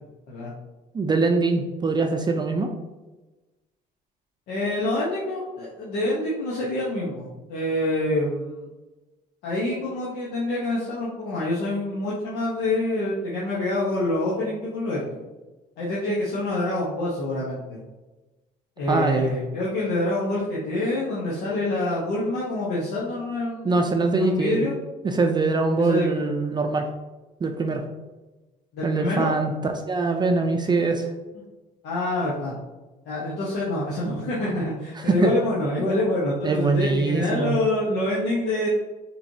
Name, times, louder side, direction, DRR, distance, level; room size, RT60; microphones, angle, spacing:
voice 1, 0.9-2.7 18.9-19.3 23.6-24.7 25.0-26.9 27.4-27.8 28.8-31.1 35.0-35.3 36.4-37.6, right 3 dB, 25° right, 4 dB, 0.4 m, -23 dB
voice 2, 4.5-8.7 9.4-15.2 15.8-17.8 18.8-23.8 24.1-24.8 25.8-26.2 28.7-29.3 31.8-32.5 33.0-38.7, left 1 dB, 85° left, -6 dB, 1.0 m, -26 dB
5.8 x 3.1 x 2.7 m, 1.1 s
cardioid pair, 110°, 17 cm